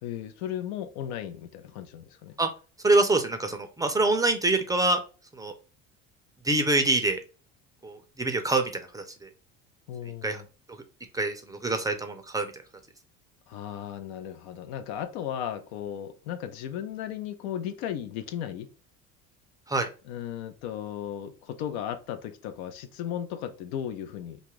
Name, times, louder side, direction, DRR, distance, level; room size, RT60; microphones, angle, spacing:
voice 1, 0.0-2.4 9.9-10.5 13.5-18.7 20.1-24.4, left 10 dB, 90° left, 0.5 m, -35 dB
voice 2, 2.8-5.0 5.3-5.5 6.4-7.2 7.8-9.3 10.2-10.4 10.7-10.8 11.1-12.5 19.7-19.9, right 2 dB, 10° right, 0.4 m, -25 dB
2.6 x 2.4 x 3.0 m
supercardioid pair, 105°, 31 cm